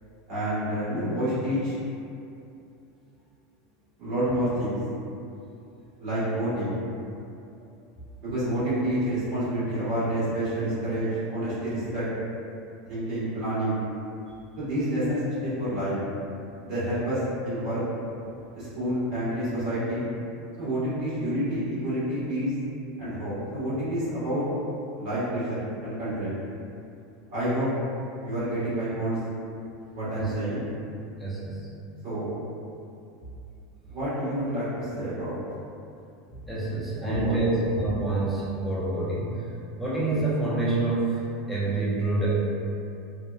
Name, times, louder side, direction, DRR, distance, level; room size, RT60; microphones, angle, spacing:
voice 1, 0.3-1.8 4.0-4.8 6.0-6.8 8.2-12.1 12.9-13.8 14.6-16.0 16.6-17.8 18.5-20.1 20.6-22.5 23.0-24.4 25.0-26.4 27.3-27.7 28.2-29.2 29.9-30.7 32.0-32.3 33.9-35.4 37.0-37.3, right 1 dB, 45° right, -12 dB, 1.3 m, -28 dB
voice 2, 31.2-31.7 36.3-37.5 37.7-39.4 39.8-41.2 41.5-42.3, right 2 dB, ahead, -9 dB, 0.5 m, -27 dB
2.7 x 2.1 x 2.3 m, 2.7 s
supercardioid pair, 155°, 0 cm